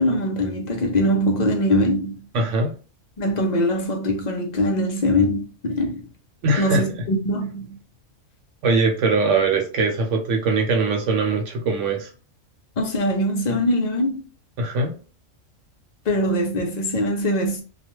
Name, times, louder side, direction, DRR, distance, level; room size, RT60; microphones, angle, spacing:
voice 1, 0.0-2.3 3.2-6.0 6.6-7.8 12.8-14.3 16.1-17.6, left 1 dB, 50° left, 0.5 m, -22 dB
voice 2, 2.3-2.7 6.4-7.0 8.6-12.1 14.6-14.9, right 3 dB, 70° right, 1.0 m, -21 dB
2.3 x 2.2 x 3.0 m
omnidirectional pair, 1.4 m